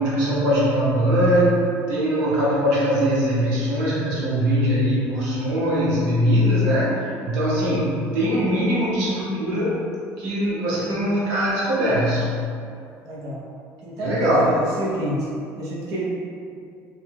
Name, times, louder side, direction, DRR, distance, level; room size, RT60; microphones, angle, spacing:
voice 1, 0.0-9.8 10.2-12.4 14.0-14.6, equal, 90° right, -7 dB, 0.9 m, -21 dB
voice 2, 13.0-13.4 13.8-15.3 15.6-16.0, right 1 dB, 60° right, -7 dB, 0.8 m, -29 dB
3.2 x 2.2 x 3.5 m, 2.4 s
cardioid pair, 130°, 6 cm